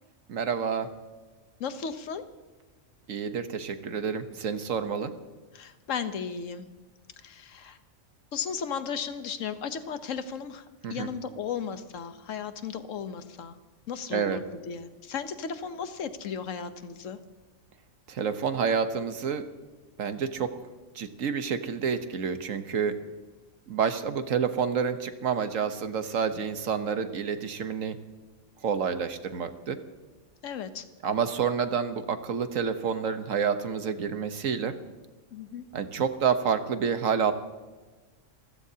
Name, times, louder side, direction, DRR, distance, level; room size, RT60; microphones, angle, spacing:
voice 1, 0.3-0.9 3.1-5.1 10.8-11.1 14.1-14.4 18.1-19.4 20.0-20.5 20.9-23.0 23.7-28.0 28.6-29.8 31.0-34.7 35.7-37.3, right 6 dB, 80° right, 9 dB, 1.4 m, -28 dB
voice 2, 1.6-2.2 5.5-6.7 7.2-7.8 8.3-10.6 10.9-13.6 13.9-17.2 30.4-30.8 35.3-35.7, left 6 dB, 75° left, 10 dB, 1.3 m, -35 dB
29.0 x 15.5 x 2.8 m, 1.3 s
omnidirectional pair, 1.3 m